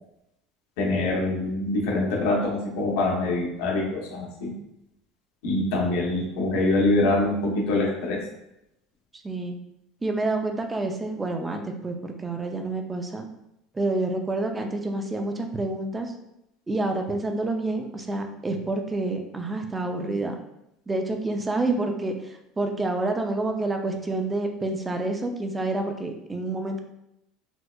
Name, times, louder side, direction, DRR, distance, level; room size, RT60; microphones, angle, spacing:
voice 1, 0.8-4.5 5.4-8.2, left 2 dB, 80° left, -2 dB, 0.9 m, -24 dB
voice 2, 9.2-9.6 10.0-13.3 13.7-16.1 16.7-20.4 20.9-26.8, right 2 dB, 10° right, 4 dB, 0.3 m, -28 dB
4.2 x 2.4 x 2.2 m, 0.84 s
cardioid pair, 165°, 0 cm